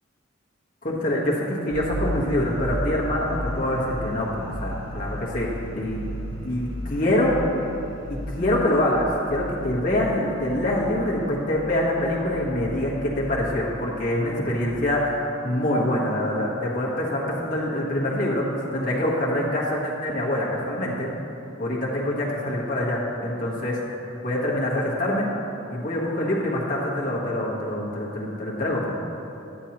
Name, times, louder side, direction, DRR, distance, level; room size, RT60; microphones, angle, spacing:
voice 1, 0.8-6.0 6.4-7.3 8.1-21.1 21.6-25.3 25.7-29.0, left 1 dB, 45° left, -4 dB, 1.4 m, -25 dB
sound 1, 1.7-14.5, equal, 75° right, 1.7 m, -35 dB
10.0 x 7.9 x 3.0 m, 2.8 s
head